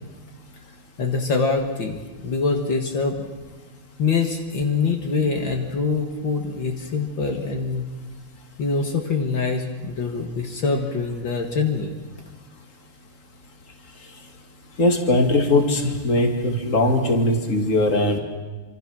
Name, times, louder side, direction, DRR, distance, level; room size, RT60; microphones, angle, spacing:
voice 1, 1.0-3.3 4.0-7.9 8.6-11.9, left 4 dB, 70° left, 3 dB, 2.5 m, -24 dB
voice 2, 14.8-18.2, left 2 dB, 40° left, 3 dB, 2.8 m, -20 dB
26.5 x 26.5 x 6.3 m, 1.3 s
omnidirectional pair, 2.2 m